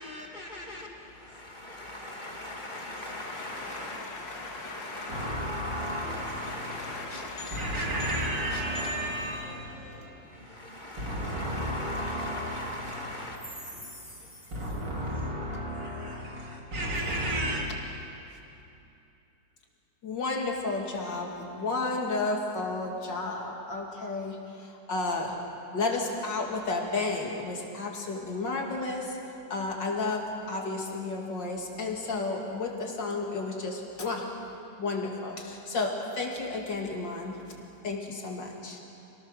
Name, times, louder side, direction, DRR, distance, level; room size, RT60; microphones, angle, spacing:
voice 1, 0.0-14.5 14.8-15.1, left 1 dB, 25° left, 2.5 m, -42 dB
voice 2, 2.6-5.3 5.8-9.0 20.0-24.4 24.9-25.3 25.7-29.0 29.5-34.2 34.8-37.4 37.8-38.8, left 3 dB, 75° left, 3.1 m, -33 dB
voice 3, 5.1-7.1 7.4-10.6 11.0-14.1 14.5-17.6, equal, 70° right, 4.4 m, -34 dB
27.0 x 18.5 x 6.7 m
omnidirectional pair, 2.0 m